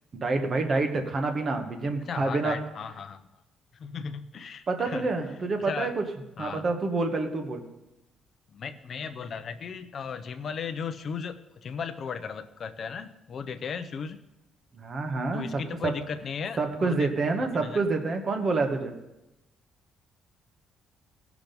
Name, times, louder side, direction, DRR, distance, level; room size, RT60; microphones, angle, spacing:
voice 1, 0.1-2.6 4.7-6.0 6.4-7.6 14.7-15.5 15.8-15.9 16.6-18.9, right 3 dB, 30° right, 5 dB, 1.2 m, -27 dB
voice 2, 2.1-3.3 3.7-5.1 5.6-5.9 6.4-6.6 8.5-14.2 15.3-17.1 17.5-17.8, left 6 dB, 35° left, 8 dB, 0.6 m, -36 dB
17.0 x 6.0 x 5.3 m, 0.94 s
cardioid pair, 175°, 0 cm